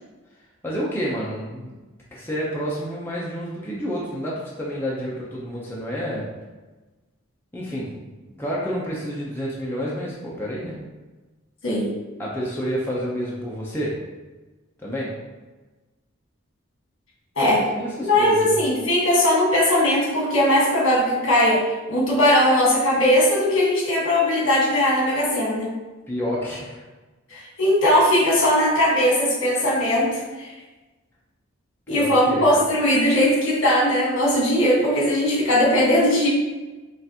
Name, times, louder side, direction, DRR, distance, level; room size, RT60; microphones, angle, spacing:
voice 1, 0.6-1.7 2.1-6.3 7.5-7.9 8.4-10.8 12.2-14.0 14.8-15.2 17.8-18.6 26.1-26.8 31.9-32.4, equal, 10° left, -6 dB, 0.6 m, -29 dB
voice 2, 17.3-17.7 18.0-21.6 21.9-25.7 27.3-30.5 31.9-36.3, left 1 dB, 75° left, -4 dB, 1.5 m, -19 dB
5.5 x 2.5 x 2.8 m, 1.2 s
head